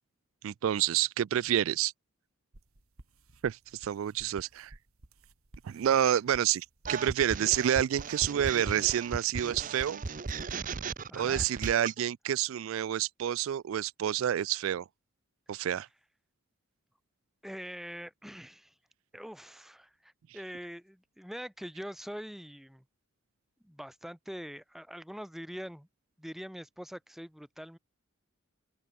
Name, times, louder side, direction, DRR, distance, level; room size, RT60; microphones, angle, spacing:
voice 1, 0.4-1.9 3.4-4.7 5.6-10.0 11.1-14.8 15.5-15.9, right 10 dB, 70° right, 0.3 m, -28 dB
sound 1, 2.5-9.2, right 1 dB, 85° right, 1.9 m, -55 dB
sound 2, 6.8-12.0, right 4 dB, 40° right, 0.6 m, -37 dB
voice 2, 11.1-11.5 17.4-18.7 19.1-22.8 23.6-25.9 26.2-27.8, equal, ahead, 0.9 m, -43 dB
open air
head